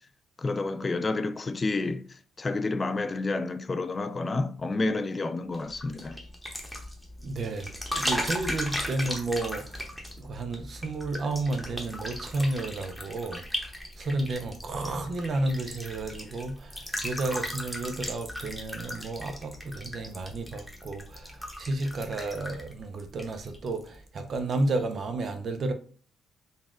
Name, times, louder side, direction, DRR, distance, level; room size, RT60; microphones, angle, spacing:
voice 1, 0.4-6.2, left 3 dB, 30° left, 0.3 m, -30 dB
sound 1, 5.5-23.9 24.2-24.6, equal, 5° left, 1.0 m, -37 dB
voice 2, 7.2-7.7 8.0-9.9 10.2-13.4 14.0-25.7, right 2 dB, 50° right, 0.6 m, -32 dB
4.0 x 2.4 x 3.7 m
cardioid pair, 90°, 0 cm